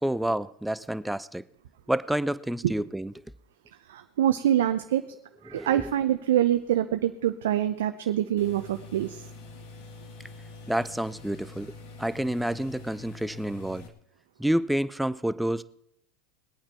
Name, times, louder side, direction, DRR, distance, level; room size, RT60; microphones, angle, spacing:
voice 1, 0.0-1.4 1.9-3.1 5.5-5.9 10.7-13.9 14.4-15.6, right 1 dB, 5° right, 0.6 m, -29 dB
voice 2, 3.9-5.0 5.4-9.3, right 11 dB, 75° right, 0.7 m, -25 dB
sound 1, 8.4-13.9, left 2 dB, 65° left, 2.1 m, -45 dB
21.0 x 8.7 x 4.5 m
hypercardioid pair, 90°, 0 cm